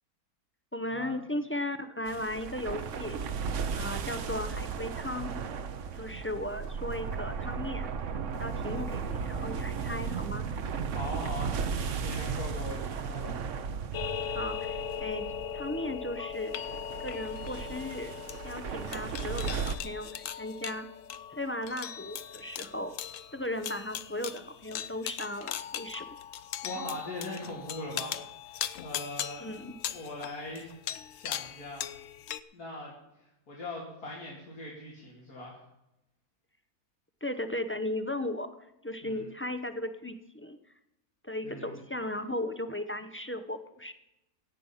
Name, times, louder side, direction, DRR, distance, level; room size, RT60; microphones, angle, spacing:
voice 1, 0.7-3.4 3.7-5.3 5.9-7.9 8.4-10.5 14.3-16.5 17.0-18.1 18.4-20.9 21.3-22.9 23.3-26.1 29.4-29.7 37.2-38.5 38.8-40.6 41.2-43.9, left 1 dB, 15° left, 9 dB, 0.4 m, -36 dB
sound 1, 2.1-19.8, right 6 dB, 60° right, 1.1 m, -35 dB
voice 2, 10.9-13.4 26.6-29.5 29.9-30.7 31.1-31.9 32.5-35.6 39.0-39.3 41.4-41.7, left 1 dB, 90° left, -4 dB, 3.0 m, -41 dB
sound 2, 13.9-32.4, left 10 dB, 65° left, 0.9 m, -39 dB
17.0 x 8.9 x 5.6 m, 0.90 s
omnidirectional pair, 1.6 m